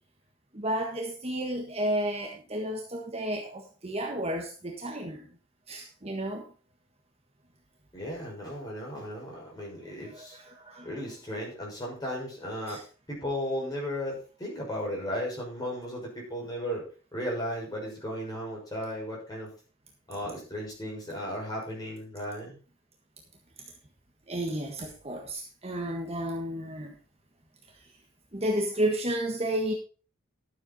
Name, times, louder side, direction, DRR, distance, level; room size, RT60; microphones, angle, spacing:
voice 1, 0.5-5.3 5.7-6.4 10.1-10.9 12.7-12.8 24.3-26.9 28.3-29.7, right 1 dB, 30° right, 1 dB, 1.6 m, -32 dB
voice 2, 7.9-10.4 10.8-12.8 13.1-16.8 17.1-19.5 20.1-22.6, equal, 20° left, -3 dB, 6.1 m, -35 dB
12.5 x 7.9 x 4.2 m, 0.36 s
head